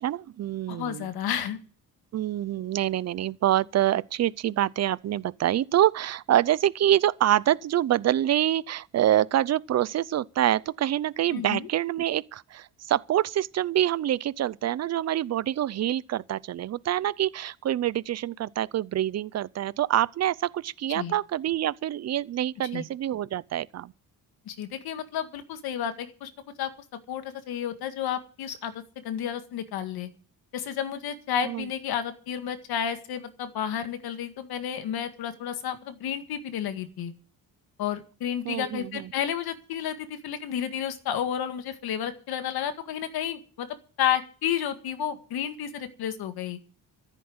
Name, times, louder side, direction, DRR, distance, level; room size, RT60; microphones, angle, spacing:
voice 1, 0.0-1.1 2.1-23.9 31.4-31.7 38.4-39.1, right 12 dB, 45° right, 0.6 m, -26 dB
voice 2, 0.7-1.6 11.3-11.7 20.9-21.1 22.7-22.8 24.5-26.3 26.6-26.7 27.1-30.1 30.5-37.1 37.8-43.7 44.0-46.6, left 9 dB, 90° left, 2.0 m, -31 dB
14.0 x 8.3 x 7.9 m
cardioid pair, 140°, 36 cm